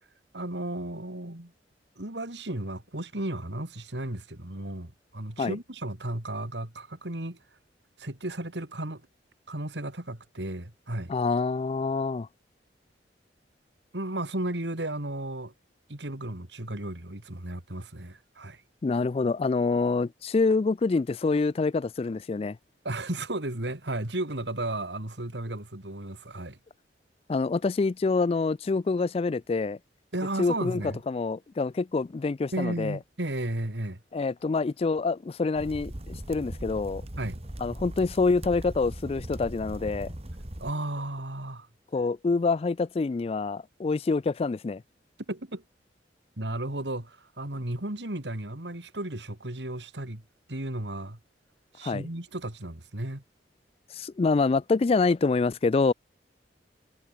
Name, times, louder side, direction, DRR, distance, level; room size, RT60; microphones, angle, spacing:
voice 1, 0.3-1.5 2.0-7.4 8.0-9.0 9.5-11.1 13.9-15.5 15.9-18.6 22.8-26.6 30.1-31.0 32.5-34.0 37.2-37.4 40.6-41.7 45.3-45.6 46.4-50.2 50.5-51.2 51.7-53.2, right 1 dB, 80° right, 3.1 m, -34 dB
voice 2, 11.1-12.3 18.8-22.6 27.3-29.8 30.4-33.0 34.1-37.0 37.6-40.1 41.9-44.8 51.8-52.1 53.9-55.9, left 4 dB, 35° left, 0.3 m, -26 dB
sound 1, 35.6-40.7, right 1 dB, 35° right, 2.1 m, -39 dB
head